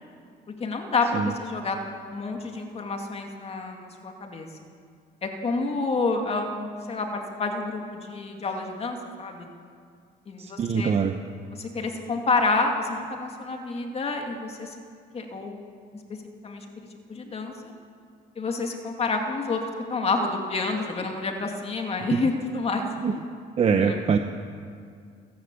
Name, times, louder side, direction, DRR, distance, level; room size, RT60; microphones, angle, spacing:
voice 1, 0.6-1.8 2.1-4.5 5.2-9.5 10.3-10.9 11.5-14.8 15.1-15.6 16.4-17.5 18.4-19.6 19.9-22.8 23.7-24.0, left 3 dB, 35° left, 3 dB, 2.4 m, -29 dB
voice 2, 10.4-11.1 22.1-22.2 23.0-23.2 23.6-24.2, right 6 dB, 40° right, 6 dB, 0.9 m, -23 dB
28.0 x 11.0 x 8.3 m, 2.2 s
cardioid pair, 110°, 17 cm